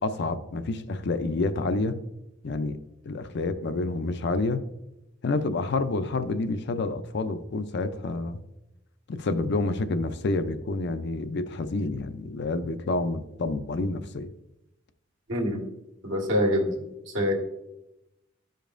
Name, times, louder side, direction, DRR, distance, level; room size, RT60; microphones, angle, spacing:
voice 1, 0.0-2.0 2.4-2.8 3.0-4.6 5.2-8.4 9.1-14.3, left 3 dB, 60° left, 11 dB, 0.5 m, -28 dB
voice 2, 15.3-15.6 16.0-16.8 17.1-17.3, left 1 dB, 70° right, -1 dB, 1.6 m, -25 dB
13.0 x 5.2 x 2.5 m, 0.90 s
head